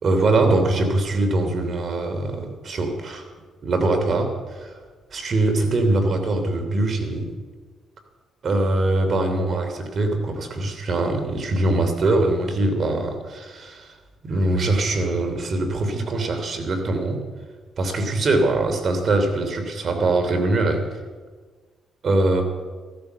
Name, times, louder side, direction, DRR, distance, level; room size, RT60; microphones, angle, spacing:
voice 1, 0.0-3.3 3.6-4.8 5.1-7.4 8.4-14.0 14.2-17.2 17.8-20.8 22.0-22.4, right 2 dB, 50° right, 6 dB, 3.0 m, -22 dB
14.5 x 13.0 x 6.9 m, 1.4 s
cardioid pair, 90°, 0 cm